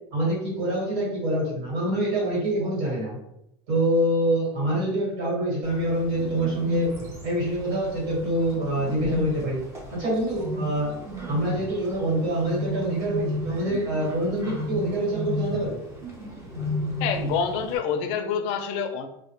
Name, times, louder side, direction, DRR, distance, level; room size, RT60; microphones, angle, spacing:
voice 1, 0.1-3.2 3.7-6.9 7.2-9.6 9.9-10.9 11.3-15.8, right 1 dB, 75° right, -4 dB, 1.3 m, -25 dB
Bird, 5.6-17.8, equal, 20° right, 0.5 m, -34 dB
voice 2, 17.0-19.1, left 6 dB, 60° left, 6 dB, 0.4 m, -27 dB
2.1 x 2.1 x 2.9 m, 0.81 s
cardioid pair, 150°, 13 cm